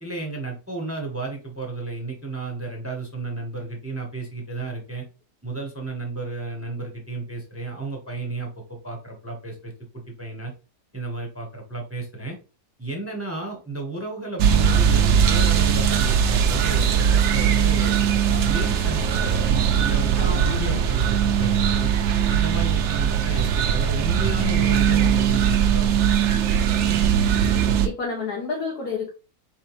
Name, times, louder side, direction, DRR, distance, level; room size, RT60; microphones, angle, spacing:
voice 1, 0.0-5.1 5.4-10.5 10.9-12.4 12.8-18.0 18.3-21.9 22.3-27.6, right 3 dB, 10° right, 0.7 m, -33 dB
sound 1, 14.4-27.9, right 8 dB, 65° right, 0.7 m, -20 dB
voice 2, 20.1-20.8 27.8-29.1, left 5 dB, 85° left, 1.6 m, -30 dB
4.3 x 3.7 x 3.0 m
omnidirectional pair, 1.6 m